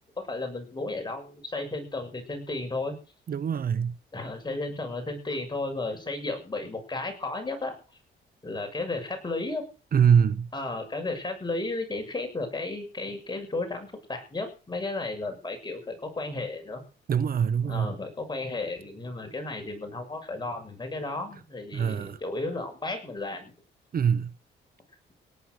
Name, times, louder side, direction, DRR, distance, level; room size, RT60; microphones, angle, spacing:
voice 1, 0.2-2.9 4.1-7.7 8.4-9.6 10.5-16.8 17.6-23.5, left 2 dB, 20° left, 6.8 m, -33 dB
voice 2, 3.3-4.0 9.9-10.5 17.1-17.9 21.7-22.2 23.9-24.3, right 7 dB, 45° right, 1.0 m, -23 dB
18.0 x 11.0 x 6.5 m
cardioid pair, 90°, 20 cm